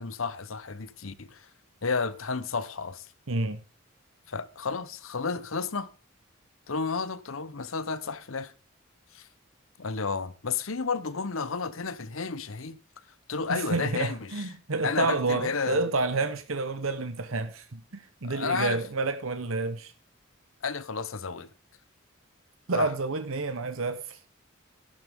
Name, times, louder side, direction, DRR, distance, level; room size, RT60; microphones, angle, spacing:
voice 1, 0.0-1.5 1.8-3.1 4.3-5.9 6.7-8.5 9.1-9.3 9.8-12.8 13.3-14.4 14.8-15.9 18.2-18.8 20.6-21.5 22.7-22.9, left 5 dB, 80° left, 0.9 m, -32 dB
voice 2, 3.3-3.6 13.5-19.9 22.7-24.2, right 3 dB, 80° right, 1.0 m, -29 dB
12.5 x 11.5 x 3.7 m
head